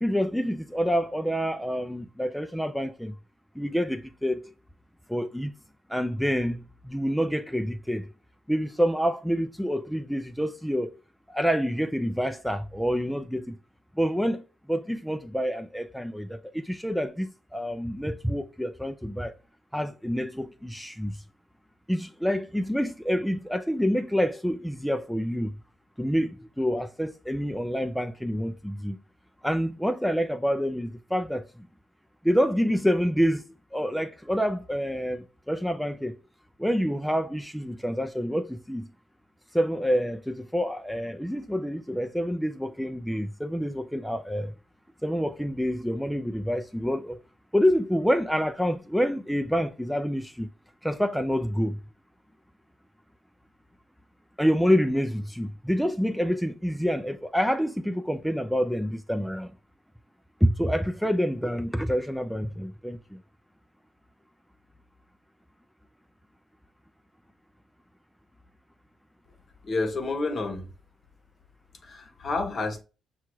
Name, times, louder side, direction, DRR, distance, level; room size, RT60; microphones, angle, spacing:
voice 1, 0.0-3.1 3.6-4.5 5.1-5.5 5.9-8.1 8.5-10.9 11.3-13.5 14.0-14.4 14.7-19.3 19.7-21.2 21.9-25.5 26.0-29.0 29.4-31.4 32.2-33.4 33.7-36.2 36.6-38.9 39.5-44.5 45.0-47.2 47.5-50.5 50.8-51.8 54.4-59.5 60.4-63.2, equal, ahead, 0.3 m, -27 dB
voice 2, 69.6-70.7 71.8-72.8, left 3 dB, 45° left, 0.9 m, -29 dB
6.0 x 2.3 x 3.0 m
cardioid pair, 90°, 0 cm